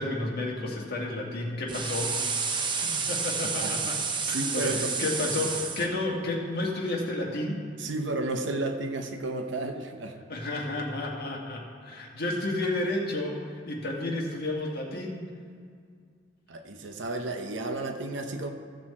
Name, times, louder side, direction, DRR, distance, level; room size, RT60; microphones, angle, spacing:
voice 1, 0.0-7.7 10.3-15.2, left 2 dB, 55° left, -2 dB, 1.8 m, -32 dB
sound 1, 1.7-5.9, right 5 dB, 25° right, 0.6 m, -30 dB
voice 2, 4.2-4.9 7.8-10.2 16.5-18.5, right 2 dB, 75° right, 5 dB, 0.8 m, -32 dB
15.0 x 6.1 x 4.3 m, 2.1 s
head